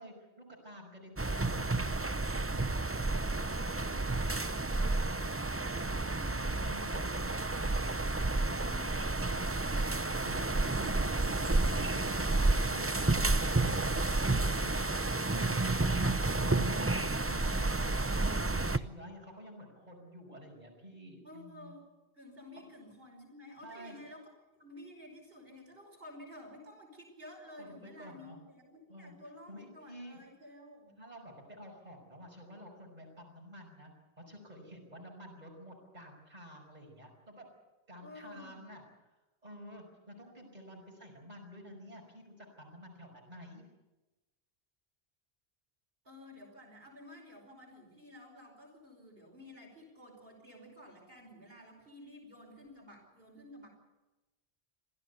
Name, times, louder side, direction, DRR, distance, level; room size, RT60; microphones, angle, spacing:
voice 1, 0.0-2.0 3.9-4.1 6.7-7.2 10.2-14.9 15.3-21.7 23.6-24.0 27.6-28.4 28.9-29.2 29.5-30.2 31.0-33.9 34.2-37.5 37.9-38.9 39.4-43.6, equal, 40° right, 0 dB, 5.7 m, -51 dB
sound 1, 1.2-18.8, right 2 dB, 15° right, 0.6 m, -31 dB
voice 2, 3.1-3.5 3.9-4.4 4.7-5.0 5.5-10.0 15.8-15.9 17.3-17.7 21.2-21.8 22.2-24.3 24.6-31.0 38.0-38.6 40.7-40.9 46.0-53.7, left 1 dB, 60° right, 0 dB, 5.7 m, -52 dB
26.0 x 16.5 x 8.2 m, 1.1 s
omnidirectional pair, 1.1 m